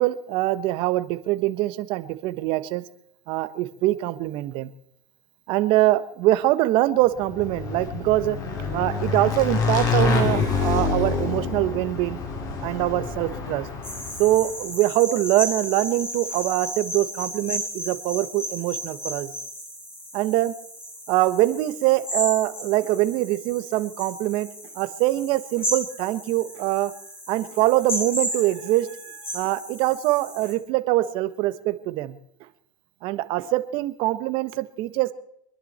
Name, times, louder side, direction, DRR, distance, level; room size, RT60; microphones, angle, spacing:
voice 1, 0.0-2.8 3.3-4.7 5.5-8.4 8.7-12.2 12.6-13.7 14.2-19.3 20.1-20.5 21.1-24.5 24.7-26.9 27.3-32.2 33.0-35.1, right 16 dB, 55° right, 12 dB, 1.3 m, -23 dB
Motorcycle / Engine, 7.2-14.5, left 4 dB, 35° left, 3.7 m, -26 dB
sound 1, 13.8-30.5, equal, 20° left, 8.0 m, -34 dB
25.0 x 11.0 x 4.4 m, 0.72 s
supercardioid pair, 130°, 11 cm